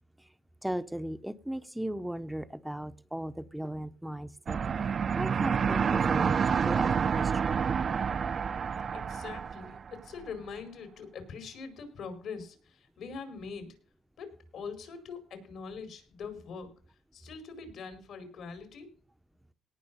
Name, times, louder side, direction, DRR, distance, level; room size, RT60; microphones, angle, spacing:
voice 1, 0.6-6.4 6.7-7.3, right 1 dB, 5° right, 11 dB, 0.7 m, -37 dB
sound 1, 4.5-10.0, right 6 dB, 50° right, 0.6 m, -28 dB
voice 2, 8.9-13.8 14.2-16.7 17.1-18.9, left 5 dB, 70° left, 8 dB, 4.7 m, -43 dB
18.5 x 6.1 x 5.4 m, 0.41 s
cardioid pair, 90°, 0 cm